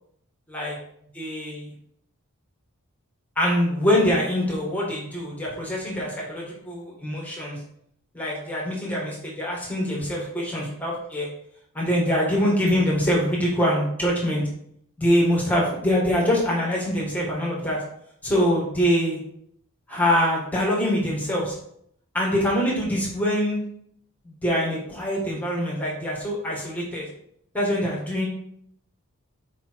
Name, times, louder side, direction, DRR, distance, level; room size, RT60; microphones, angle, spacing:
voice 1, 1.1-1.7 3.4-7.6 8.1-11.3 11.7-14.4 15.0-17.8 18.2-19.2 19.9-21.6 22.1-23.6 24.2-27.1 27.5-28.3, equal, 5° left, -4 dB, 1.9 m, -24 dB
7.2 x 4.9 x 4.7 m, 0.69 s
head